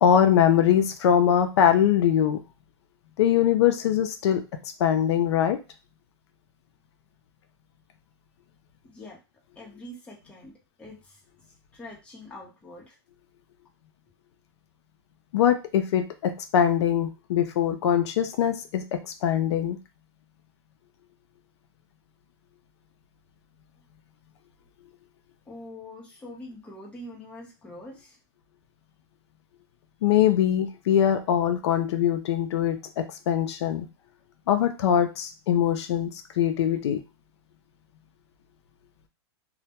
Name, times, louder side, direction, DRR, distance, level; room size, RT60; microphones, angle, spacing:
voice 1, 0.0-2.4 3.2-4.4 4.8-5.6 15.3-19.8 30.0-33.9 34.5-36.1 36.4-37.0, left 9 dB, 75° left, 7 dB, 0.4 m, -22 dB
voice 2, 8.8-9.2 9.6-11.2 11.7-13.0 25.5-28.2, left 1 dB, 10° left, -4 dB, 0.7 m, -44 dB
2.1 x 2.1 x 2.8 m, 0.29 s
supercardioid pair, 155°, 14 cm